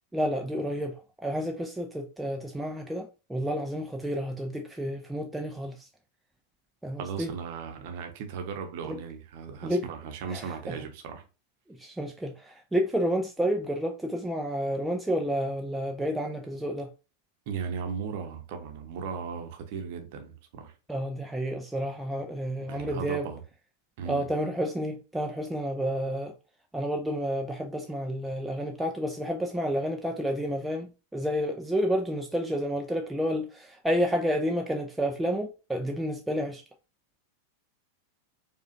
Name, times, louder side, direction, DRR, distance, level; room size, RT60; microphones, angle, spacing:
voice 1, 0.1-5.7 6.8-7.3 8.8-9.0 9.6-9.8 10.3-10.4 11.8-16.9 20.9-23.3 24.1-26.3 26.7-36.6, equal, 5° right, 0.4 m, -30 dB
voice 2, 7.0-11.2 17.5-20.7 22.7-23.4 24.0-24.3, right 6 dB, 50° right, 0.8 m, -37 dB
4.8 x 2.4 x 2.7 m
figure-of-eight pair, 90°, 0 cm